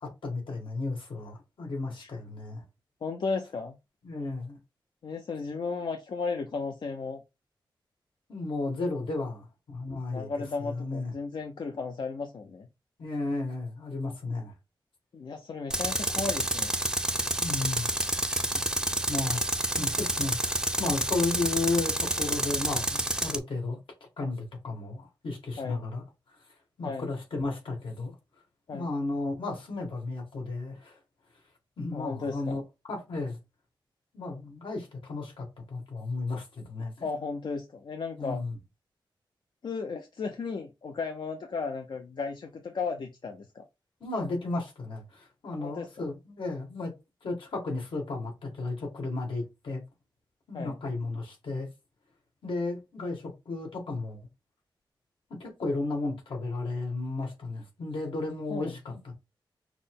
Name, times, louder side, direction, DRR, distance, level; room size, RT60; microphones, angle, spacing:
voice 1, 0.0-2.6 4.0-4.6 8.3-10.3 10.6-11.1 13.0-14.5 17.4-17.9 18.5-18.6 19.1-23.8 24.2-26.0 26.3-26.4 26.8-28.1 28.7-31.0 31.8-32.6 32.9-33.4 34.1-37.1 38.2-38.6 44.0-46.9 47.2-49.8 50.5-51.7 52.4-54.2 55.3-59.1, left 3 dB, 80° left, 2.0 m, -34 dB
voice 2, 3.0-3.8 5.0-7.2 10.1-12.7 15.1-16.7 25.6-25.8 26.8-27.1 28.7-28.9 31.9-32.6 37.0-38.4 39.6-43.6 45.5-45.9 50.5-50.8 58.5-58.8, left 4 dB, 65° left, 0.6 m, -35 dB
Tools, 15.7-23.4, right 1 dB, 10° right, 0.5 m, -29 dB
5.9 x 2.1 x 3.7 m
wide cardioid pair, 145°, 9 cm